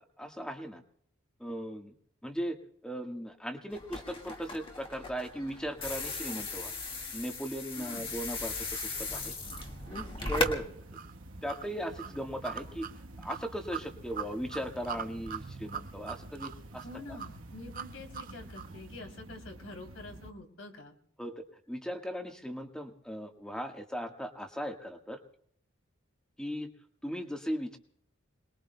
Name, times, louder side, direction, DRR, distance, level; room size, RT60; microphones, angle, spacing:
voice 1, 0.2-0.8 1.4-1.9 2.2-6.7 7.1-9.3 10.3-10.8 11.4-12.9 13.2-16.8 21.2-25.2 26.4-26.7 27.0-27.8, equal, 5° left, 4 dB, 1.4 m, -38 dB
sound 1, 3.7-10.6, left 2 dB, 25° left, 1.8 m, -37 dB
voice 2, 7.7-8.2 10.2-10.6 16.8-20.9, left 2 dB, 75° left, 3 dB, 3.1 m, -47 dB
sound 2, 8.7-18.8, right 7 dB, 40° right, 0.5 m, -43 dB
sound 3, 9.4-20.3, right 1 dB, 85° right, 1.2 m, -49 dB
27.0 x 21.0 x 2.2 m, 0.65 s
head